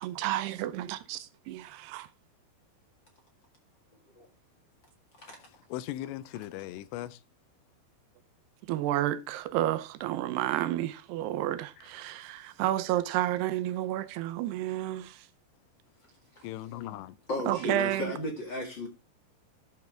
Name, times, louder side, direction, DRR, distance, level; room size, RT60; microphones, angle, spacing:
voice 1, 0.0-2.1 8.6-15.3 17.5-18.2, right 13 dB, 80° right, 2.6 m, -31 dB
voice 2, 5.7-7.2 16.4-17.2, left 14 dB, 90° left, 2.9 m, -38 dB
voice 3, 17.3-18.9, left 1 dB, 45° left, 1.6 m, -35 dB
12.0 x 7.0 x 3.3 m
omnidirectional pair, 5.0 m